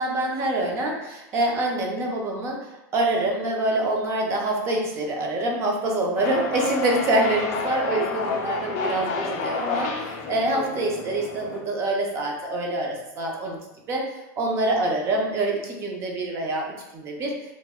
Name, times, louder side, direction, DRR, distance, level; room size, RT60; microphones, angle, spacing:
voice 1, 0.0-2.6 2.9-13.6 13.9-14.0 14.4-17.3, right 2 dB, 25° right, 0 dB, 0.5 m, -25 dB
sound 1, 6.2-11.6, left 4 dB, 50° left, 0.4 m, -30 dB
2.8 x 2.1 x 3.4 m, 0.94 s
supercardioid pair, 170°, 10 cm